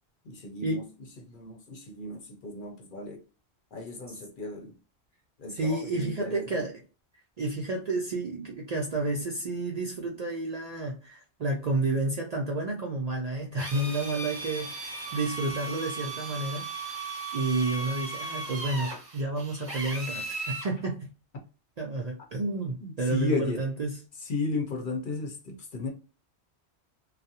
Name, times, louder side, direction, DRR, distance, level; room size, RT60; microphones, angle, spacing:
voice 1, 0.2-3.2 3.7-4.8 5.4-6.7 21.3-21.4 22.8-23.6 24.2-25.9, left 3 dB, 55° left, 0.7 m, -34 dB
voice 2, 5.5-6.7 7.4-17.0 17.3-21.0 21.8-24.0, right 2 dB, 55° right, 0.4 m, -30 dB
Drill, 13.6-20.7, right 3 dB, 35° right, 0.9 m, -37 dB
2.4 x 2.0 x 2.7 m
omnidirectional pair, 1.1 m